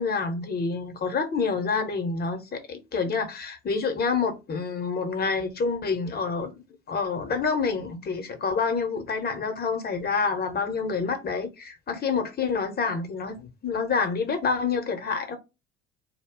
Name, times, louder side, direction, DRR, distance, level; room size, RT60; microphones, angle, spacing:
voice 1, 0.0-6.6 6.9-15.4, left 5 dB, 25° left, 0.8 m, -28 dB
2.3 x 2.1 x 3.6 m
figure-of-eight pair, 60°, 37 cm